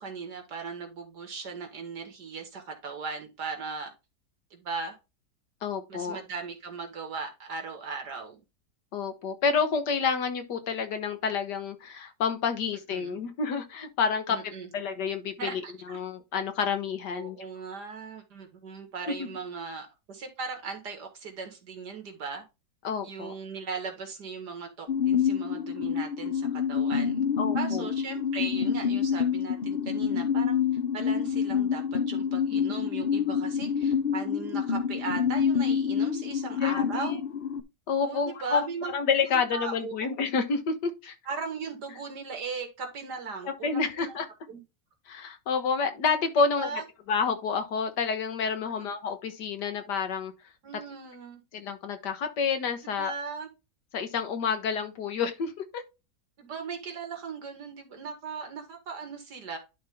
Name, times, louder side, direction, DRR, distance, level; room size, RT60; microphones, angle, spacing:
voice 1, 0.0-3.9 4.5-5.0 5.9-8.4 12.9-13.2 14.3-14.7 15.4-16.0 17.1-22.4 23.0-30.6 30.9-37.2 38.0-38.9 39.5-39.9 41.3-44.2 44.5-44.6 46.6-46.8 48.6-48.8 50.6-51.4 52.8-53.5 56.4-59.6, right 4 dB, 75° right, 2.2 m, -38 dB
voice 2, 5.6-6.2 8.9-15.6 15.9-17.4 19.2-19.3 22.8-23.3 27.4-27.9 32.5-32.6 36.6-37.2 37.9-38.7 38.9-41.1 43.5-44.3 45.1-46.7 47.1-50.3 51.5-53.1 53.9-55.8, left 5 dB, 80° left, 1.8 m, -29 dB
sound 1, 24.9-37.6, left 7 dB, 60° left, 0.6 m, -27 dB
11.0 x 3.9 x 3.5 m
omnidirectional pair, 1.8 m